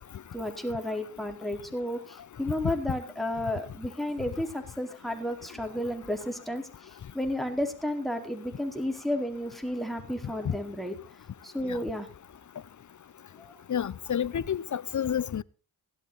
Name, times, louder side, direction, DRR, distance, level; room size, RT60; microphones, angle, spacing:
voice 1, 0.3-11.0 11.4-12.1 13.4-13.5, left 1 dB, ahead, 4.5 m, -32 dB
voice 2, 13.7-15.4, left 9 dB, 50° left, 0.8 m, -29 dB
16.5 x 12.5 x 4.1 m
cardioid pair, 70°, 39 cm